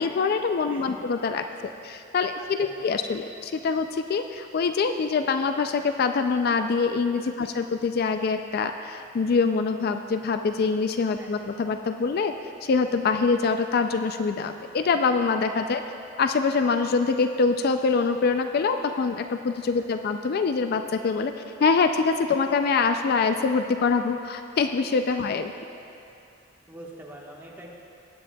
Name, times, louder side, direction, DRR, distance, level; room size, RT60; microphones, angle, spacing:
voice 1, 0.0-12.3 12.6-15.8 16.2-21.3 21.6-25.5, left 4 dB, 55° left, 7 dB, 0.4 m, -24 dB
voice 2, 2.3-2.9 11.2-11.3 19.8-19.9 26.7-27.7, right 1 dB, 10° right, -3 dB, 1.3 m, -45 dB
18.0 x 9.7 x 2.3 m, 2.6 s
head